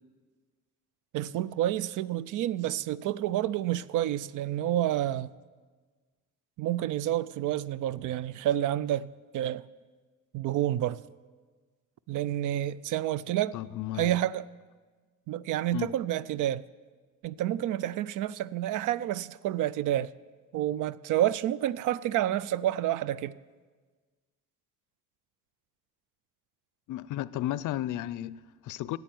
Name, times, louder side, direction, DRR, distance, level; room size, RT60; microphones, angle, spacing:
voice 1, 1.1-5.3 6.6-9.6 10.3-11.0 12.1-13.6 14.0-14.5 15.3-16.6 17.2-20.1 20.5-23.3, right 12 dB, 80° right, 0.5 m, -29 dB
voice 2, 13.5-14.2 15.7-15.9 26.9-29.0, left 14 dB, 75° left, 0.5 m, -34 dB
10.5 x 8.1 x 9.2 m
cardioid pair, 105°, 31 cm